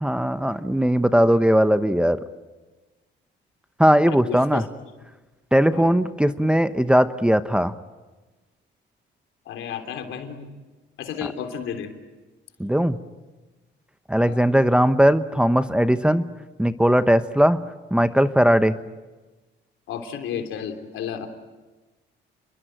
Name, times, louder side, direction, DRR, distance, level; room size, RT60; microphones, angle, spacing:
voice 1, 0.0-2.2 3.8-4.6 5.5-7.7 12.6-13.0 14.1-16.2 16.6-17.6 17.9-18.8, equal, 5° right, 11 dB, 1.0 m, -19 dB
voice 2, 4.1-4.7 5.7-6.0 9.4-10.5 11.0-11.9 14.2-14.5 19.9-21.3, left 8 dB, 80° left, 6 dB, 3.3 m, -32 dB
29.5 x 22.0 x 9.1 m, 1.2 s
cardioid pair, 90°, 20 cm